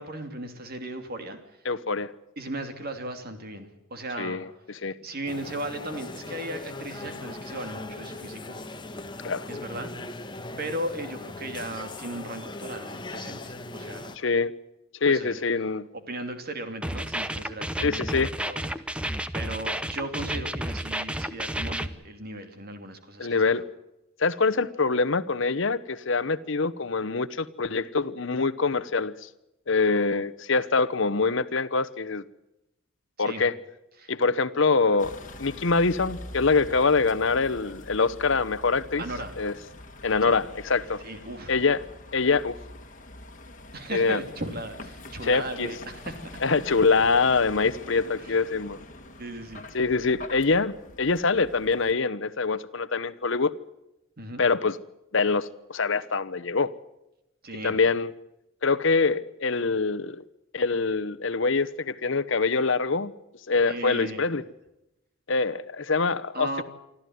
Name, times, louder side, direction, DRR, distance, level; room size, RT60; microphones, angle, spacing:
voice 1, 0.0-1.6 2.4-4.4 4.7-8.9 9.5-9.9 10.6-14.2 15.1-15.4 15.9-18.8 19.3-23.5 33.2-33.4 34.0-34.1 39.0-39.4 40.2-40.3 41.0-41.5 43.7-46.3 48.2-48.4 49.2-49.6 54.2-54.4 57.4-57.8 63.7-64.3 66.3-66.6, right 1 dB, 45° right, 2.8 m, -37 dB
voice 2, 1.6-2.1 4.2-4.5 4.8-4.9 9.2-9.5 14.2-14.5 15.0-15.9 17.8-18.3 23.2-23.6 24.2-29.1 29.7-32.2 33.2-33.5 34.1-35.1 35.4-39.0 39.4-39.5 40.0-41.0 41.5-41.8 42.1-42.5 43.9-44.2 45.2-45.7 46.4-48.8 49.7-53.5 54.4-54.8 55.1-56.7 57.6-58.1 58.6-60.2 60.5-63.1 63.5-64.4 65.3-66.6, left 4 dB, 65° left, 1.0 m, -24 dB
sound 1, 5.3-14.2, left 2 dB, 20° left, 1.2 m, -39 dB
sound 2, 16.8-21.9, right 1 dB, 5° right, 0.8 m, -31 dB
Vehicle, 35.0-51.9, left 1 dB, 40° left, 1.8 m, -44 dB
25.0 x 14.0 x 9.4 m
head